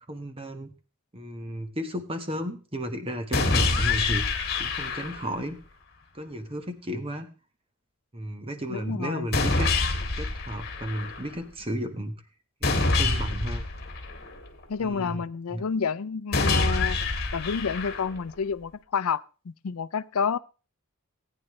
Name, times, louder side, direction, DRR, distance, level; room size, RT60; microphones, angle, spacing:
voice 1, 0.1-0.7 1.1-5.6 6.1-7.3 8.1-9.7 10.2-12.1 12.6-13.6 14.8-15.2 15.5-15.6, equal, 25° right, 8 dB, 1.3 m, -33 dB
sound 1, 3.3-5.4 9.3-11.3 12.6-14.6 16.3-18.3, left 3 dB, 45° left, 1.8 m, -26 dB
voice 2, 8.7-9.3 14.7-17.0 17.3-20.4, left 6 dB, 85° left, 18 dB, 0.5 m, -29 dB
18.0 x 9.0 x 3.2 m, 0.34 s
head